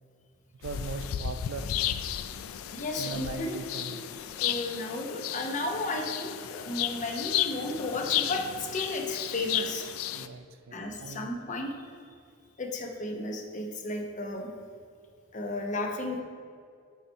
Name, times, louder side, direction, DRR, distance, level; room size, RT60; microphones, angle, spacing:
sound 1, 0.6-10.3, left 11 dB, 90° left, 0.3 m, -33 dB
voice 1, 0.6-1.7 3.0-4.0 10.1-11.3, right 4 dB, 65° right, 10 dB, 0.4 m, -40 dB
voice 2, 2.7-3.6 4.3-9.9 10.7-11.7 12.6-14.5 15.3-16.2, left 2 dB, 35° left, 2 dB, 0.7 m, -33 dB
7.4 x 4.2 x 4.3 m, 2.2 s
head